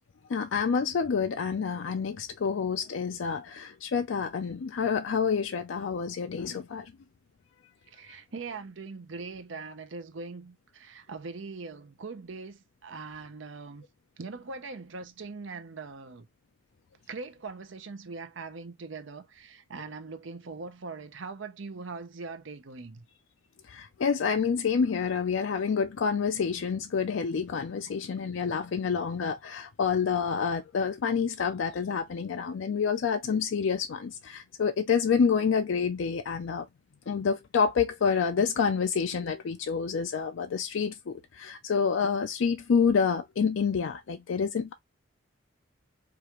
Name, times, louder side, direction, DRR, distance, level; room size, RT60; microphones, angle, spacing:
voice 1, 0.3-6.9 23.7-36.7 37.1-44.7, left 6 dB, 80° left, 0.4 m, -28 dB
voice 2, 7.9-13.8 14.2-16.3 17.1-23.0, right 4 dB, 75° right, 0.7 m, -41 dB
4.8 x 2.5 x 3.0 m
head